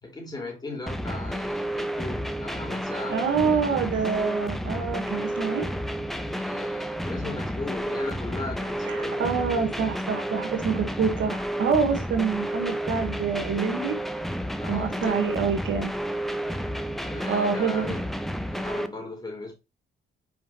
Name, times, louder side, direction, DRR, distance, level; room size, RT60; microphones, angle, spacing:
voice 1, 0.0-3.3 6.3-9.5 14.6-15.6 17.0-18.1 18.4-19.5, left 2 dB, 20° left, 3.8 m, -37 dB
sound 1, 0.9-18.9, equal, ahead, 0.7 m, -31 dB
voice 2, 3.1-5.7 8.8-14.0 14.7-15.9 17.3-17.9, right 6 dB, 70° right, 1.6 m, -26 dB
6.2 x 4.9 x 3.1 m
cardioid pair, 90°, 20 cm